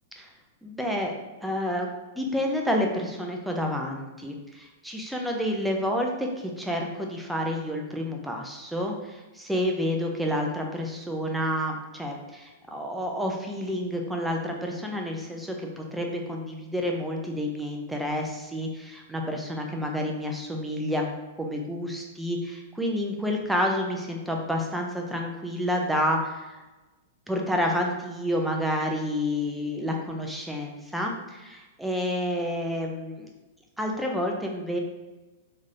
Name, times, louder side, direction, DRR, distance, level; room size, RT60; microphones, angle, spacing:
voice 1, 0.6-1.1 1.4-1.9 2.2-21.0 21.4-26.6 27.3-33.3 33.8-34.8, equal, 5° right, 0 dB, 0.6 m, -29 dB
3.6 x 3.2 x 2.7 m, 1.1 s
hypercardioid pair, 110°, 0 cm